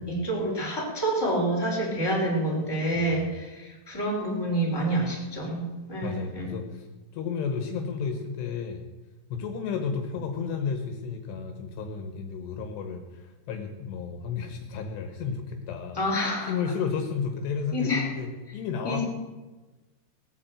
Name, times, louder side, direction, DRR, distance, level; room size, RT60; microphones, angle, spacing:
voice 1, 0.0-6.5 16.0-16.5 17.7-18.1 18.8-19.0, right 1 dB, 5° left, -3 dB, 3.8 m, -28 dB
voice 2, 2.9-3.4 5.1-5.2 6.0-6.9 7.1-8.8 9.3-16.0 16.5-19.0, left 6 dB, 75° left, 5 dB, 3.2 m, -32 dB
18.5 x 8.8 x 7.9 m, 1.2 s
omnidirectional pair, 5.1 m